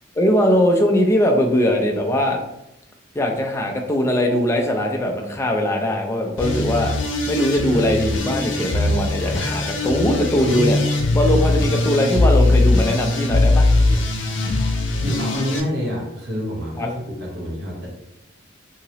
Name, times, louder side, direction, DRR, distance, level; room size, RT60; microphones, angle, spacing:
voice 1, 0.2-2.4 3.1-6.9 7.3-10.8 11.1-13.7 16.8-16.9, left 1 dB, 15° left, 1 dB, 0.4 m, -20 dB
sound 1, 6.4-15.6, left 2 dB, 75° left, 0.5 m, -20 dB
voice 2, 15.0-17.9, equal, 55° right, -3 dB, 1.1 m, -28 dB
2.9 x 2.8 x 2.8 m, 0.85 s
head